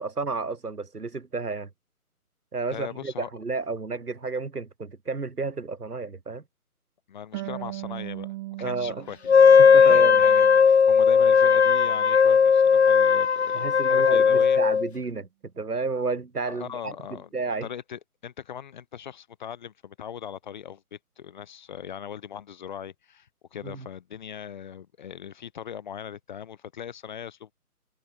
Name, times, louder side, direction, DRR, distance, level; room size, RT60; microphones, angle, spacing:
voice 1, 0.0-1.7 2.5-6.4 8.6-9.1 9.6-10.2 13.5-15.3 15.6-16.9 17.3-17.7 23.6-23.9, right 4 dB, 85° right, 6.4 m, -31 dB
voice 2, 2.7-3.3 7.1-14.6 16.5-17.3 17.6-27.5, left 9 dB, 30° left, 4.3 m, -40 dB
Harp, 7.3-10.7 11.1-12.1, right 18 dB, 20° right, 7.3 m, -39 dB
Wind instrument woodwind instrument, 9.3-14.9, left 6 dB, 45° left, 1.3 m, -17 dB
hypercardioid pair, 165°, 45 cm